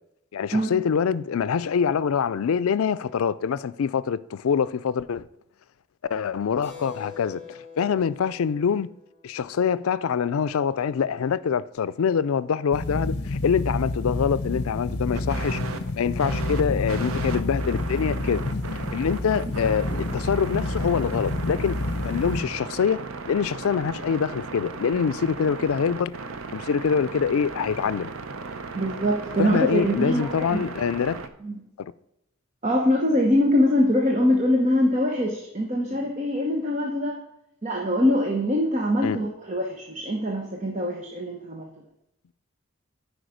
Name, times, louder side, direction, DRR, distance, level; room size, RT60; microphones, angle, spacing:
voice 1, 0.3-5.3 6.1-8.9 9.2-15.6 15.9-18.4 18.9-19.9 20.1-21.8 22.0-23.0 23.3-26.1 26.5-28.1 29.4-31.2 31.8-31.9 39.0-39.2, left 6 dB, 90° left, 0.4 m, -25 dB
Keyboard (musical), 6.6-10.7, left 6 dB, 10° left, 3.2 m, -46 dB
sound 1, 12.7-22.4, left 2 dB, 50° left, 0.8 m, -29 dB
sound 2, 15.1-31.3, right 4 dB, 85° right, 0.7 m, -36 dB
voice 2, 28.7-30.6 31.4-31.6 32.6-37.2 37.6-41.7, left 1 dB, 35° right, 1.0 m, -23 dB
10.0 x 5.0 x 5.1 m
head